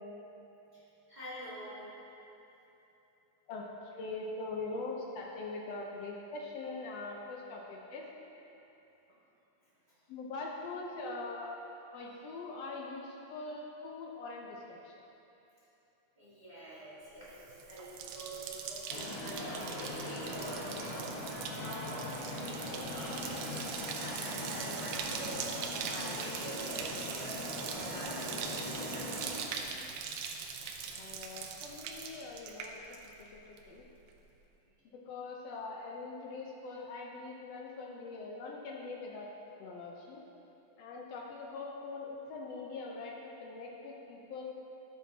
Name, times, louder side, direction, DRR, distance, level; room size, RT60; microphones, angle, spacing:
voice 1, 1.1-1.9 11.0-11.2 16.2-25.5 25.9-29.6, right 1 dB, 20° right, -11 dB, 1.4 m, -46 dB
voice 2, 4.0-8.1 10.1-11.5 11.9-14.9 24.2-24.3 30.9-32.8 33.2-33.8 34.9-39.3 39.6-40.2 40.8-44.5, left 3 dB, 80° left, -1 dB, 1.4 m, -42 dB
Bathtub (filling or washing), 17.2-33.3 33.6-34.1, right 6 dB, 85° right, 2.2 m, -42 dB
sound 1, 18.9-29.4, left 1 dB, 50° left, 1.1 m, -41 dB
12.5 x 7.6 x 2.8 m, 3.0 s
omnidirectional pair, 3.7 m